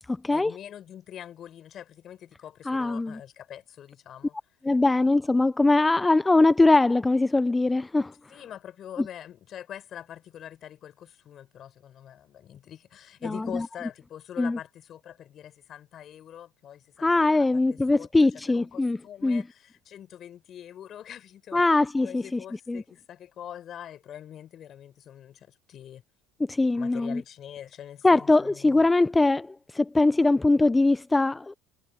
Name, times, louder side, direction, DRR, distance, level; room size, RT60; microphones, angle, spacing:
voice 1, 0.3-4.3 4.7-4.8 8.3-21.6 22.0-26.0 26.7-28.8, left 10 dB, 45° left, 5.8 m, -44 dB
voice 2, 2.7-3.2 4.6-8.1 13.2-13.7 14.4-14.6 17.0-19.4 21.5-22.4 22.7-22.8 26.5-27.2 28.0-31.5, left 2 dB, 10° left, 0.5 m, -22 dB
supercardioid pair, 100°, 0 cm